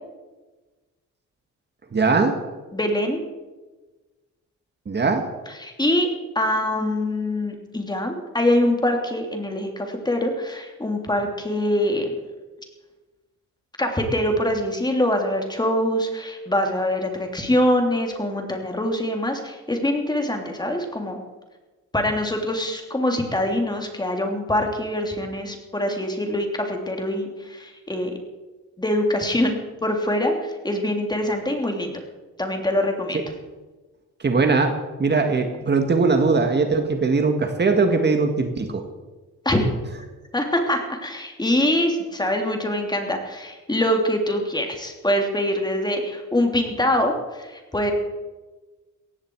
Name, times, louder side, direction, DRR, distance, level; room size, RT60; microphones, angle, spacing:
voice 1, 1.9-2.4 4.9-5.2 34.2-38.8, right 4 dB, 35° right, 5 dB, 1.9 m, -20 dB
voice 2, 2.7-3.2 5.6-6.1 6.3-12.1 13.8-21.2 21.9-28.1 28.8-32.0 32.4-33.2 39.4-39.6 40.3-47.9, left 1 dB, 15° left, 3 dB, 3.2 m, -24 dB
17.5 x 15.0 x 4.8 m, 1.2 s
cardioid pair, 90°, 30 cm